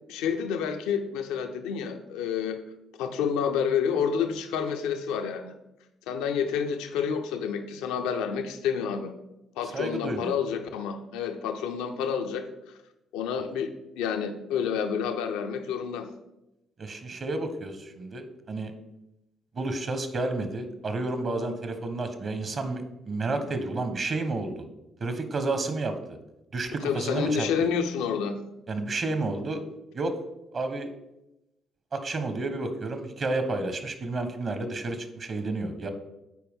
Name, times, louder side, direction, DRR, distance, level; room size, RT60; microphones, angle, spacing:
voice 1, 0.1-2.6 3.0-5.5 6.1-9.1 9.6-12.5 13.1-16.1 26.8-28.4, left 7 dB, 80° left, 6 dB, 0.6 m, -29 dB
voice 2, 9.7-10.3 16.8-18.7 19.5-24.7 25.0-25.9 26.5-27.5 28.7-29.6 29.9-30.2 30.5-30.9 31.9-35.9, right 2 dB, 50° right, 8 dB, 1.1 m, -31 dB
9.2 x 4.5 x 3.6 m, 0.92 s
hypercardioid pair, 55°, 0 cm